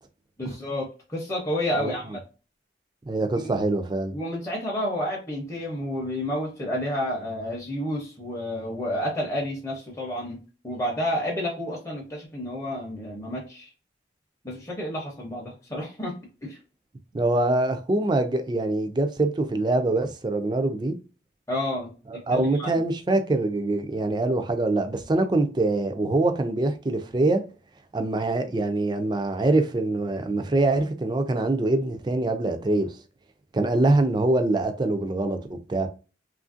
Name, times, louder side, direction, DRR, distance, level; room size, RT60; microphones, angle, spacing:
voice 1, 0.4-2.2 4.1-10.4 10.6-13.7 14.4-16.2 16.4-16.6 21.5-22.7, left 1 dB, 15° left, 0.6 m, -30 dB
voice 2, 3.1-4.2 17.1-21.0 22.1-27.4 27.9-33.0 33.5-35.9, right 2 dB, 25° right, 0.3 m, -24 dB
3.1 x 2.4 x 2.5 m
head